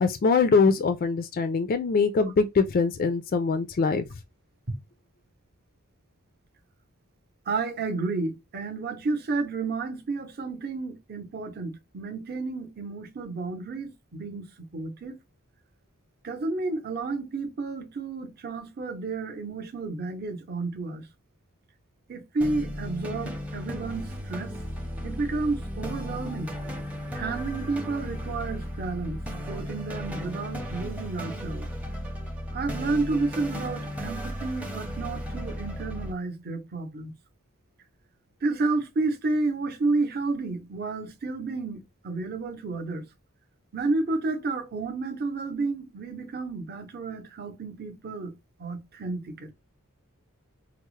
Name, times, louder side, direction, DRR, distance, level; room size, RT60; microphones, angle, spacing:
voice 1, 0.0-4.0, left 4 dB, 40° left, 0.3 m, -23 dB
voice 2, 7.5-14.4 14.7-15.2 16.2-21.1 22.1-24.5 25.0-26.5 27.1-29.2 29.5-31.7 32.5-37.1 38.4-43.1 43.7-48.3 48.6-49.5, right 3 dB, 45° right, 0.7 m, -31 dB
sound 1, 22.4-36.1, equal, 5° right, 0.6 m, -35 dB
4.4 x 2.0 x 3.0 m
head